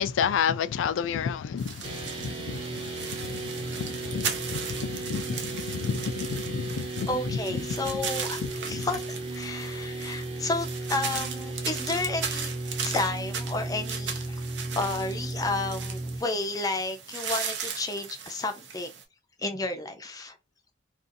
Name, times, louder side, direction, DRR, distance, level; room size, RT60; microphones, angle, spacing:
voice 1, 0.0-7.4 8.4-8.9, left 7 dB, 90° left, 0.3 m, -31 dB
sound 1, 1.6-19.0, right 6 dB, 65° right, 0.6 m, -37 dB
sound 2, 1.8-16.2, right 2 dB, 30° right, 0.7 m, -35 dB
voice 2, 7.1-8.4 8.7-12.5 12.8-14.3 14.7-18.9 19.4-20.4, left 2 dB, 20° left, 0.4 m, -31 dB
2.5 x 2.4 x 2.5 m
head